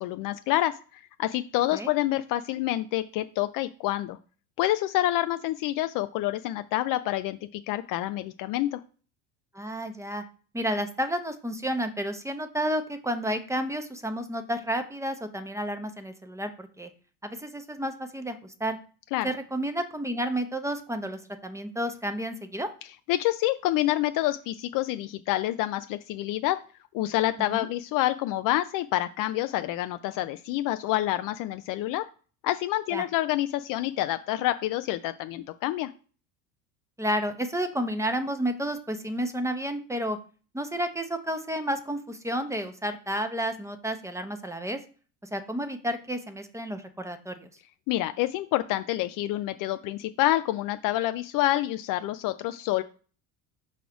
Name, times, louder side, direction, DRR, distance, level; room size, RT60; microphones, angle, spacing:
voice 1, 0.0-4.2 4.6-8.8 19.1-19.3 23.1-26.6 26.9-32.0 32.4-35.9 47.9-52.8, left 15 dB, 45° left, 10 dB, 0.4 m, -27 dB
voice 2, 9.5-10.2 10.5-16.9 17.2-18.8 19.2-22.7 27.5-27.7 32.9-33.0 37.0-40.2 40.5-44.8 45.3-47.5, equal, 5° right, 8 dB, 0.8 m, -31 dB
5.4 x 4.2 x 4.8 m, 0.39 s
hypercardioid pair, 80°, 48 cm